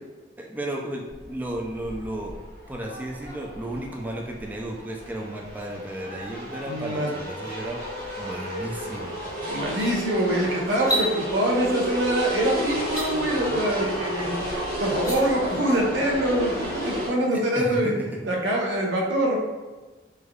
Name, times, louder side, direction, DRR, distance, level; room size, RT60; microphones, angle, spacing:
voice 1, 0.4-2.3 2.7-9.1 17.3-18.2, right 1 dB, 10° right, 0 dB, 0.3 m, -34 dB
sound 1, 1.1-17.1, equal, 50° right, 1.0 m, -32 dB
voice 2, 6.7-7.1 9.5-17.9 18.3-19.4, right 1 dB, 80° right, -2 dB, 0.6 m, -24 dB
sound 2, 10.8-11.1 12.8-13.1 14.9-15.2, right 1 dB, 20° left, 0.8 m, -26 dB
3.3 x 2.3 x 2.2 m, 1.3 s
head